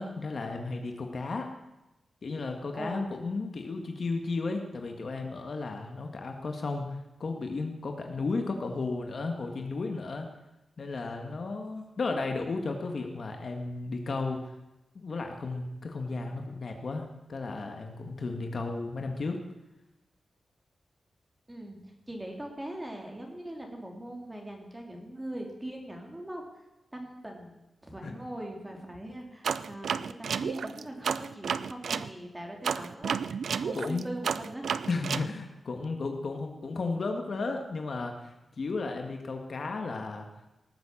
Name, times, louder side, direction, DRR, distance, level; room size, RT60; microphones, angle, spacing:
voice 1, 0.0-1.5 2.2-10.3 10.8-14.4 15.0-19.4 28.0-28.1 33.7-34.1 34.9-40.3, left 3 dB, 55° left, 4 dB, 1.9 m, -34 dB
voice 2, 2.7-3.2 21.5-26.5 26.9-27.5 27.8-33.2 33.6-34.7, right 1 dB, 15° right, 1 dB, 3.2 m, -41 dB
sound 1, 29.4-32.1 32.6-35.3, right 6 dB, 85° right, 0.5 m, -31 dB
18.0 x 7.8 x 7.3 m, 0.98 s
wide cardioid pair, 105°, 0 cm